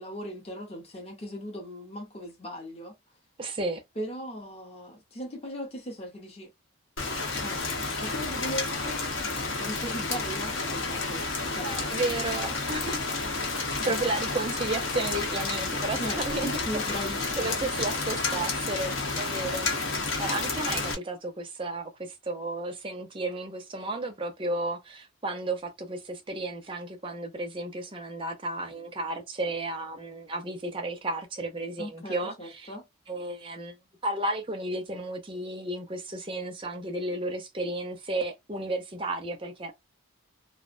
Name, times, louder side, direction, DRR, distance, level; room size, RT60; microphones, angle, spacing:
voice 1, 0.0-2.9 4.0-6.5 7.4-7.6 8.0-9.1 9.6-11.2 11.5-11.9 13.9-14.0 16.0-17.6 31.8-32.8, equal, 30° left, 0.6 m, -38 dB
voice 2, 3.4-3.8 11.9-12.8 13.8-16.5 16.9-19.7 20.2-32.7 33.1-33.8 34.0-39.7, right 2 dB, 25° right, 0.5 m, -33 dB
Rain, 7.0-20.9, left 3 dB, 60° left, 0.8 m, -30 dB
2.4 x 2.1 x 2.4 m
head